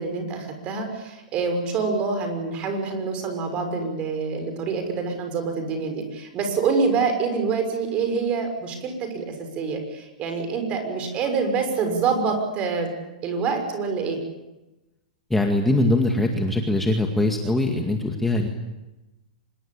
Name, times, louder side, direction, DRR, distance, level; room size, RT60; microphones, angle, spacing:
voice 1, 0.0-12.9 13.2-14.2, right 5 dB, 25° right, 6 dB, 6.3 m, -26 dB
voice 2, 15.3-18.5, left 2 dB, 5° left, 2 dB, 2.1 m, -22 dB
26.0 x 22.0 x 8.9 m, 1.0 s
hypercardioid pair, 150°, 4 cm